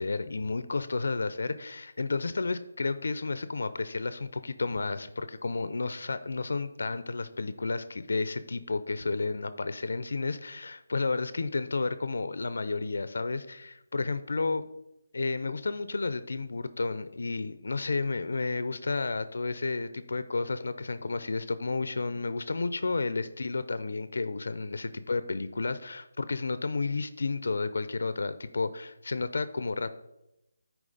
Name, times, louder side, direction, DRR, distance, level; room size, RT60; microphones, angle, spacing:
voice 1, 0.0-14.7 15.1-30.0, left 3 dB, 70° left, 13 dB, 0.5 m, -32 dB
9.7 x 4.8 x 3.9 m, 0.90 s
hypercardioid pair, 170°, 0 cm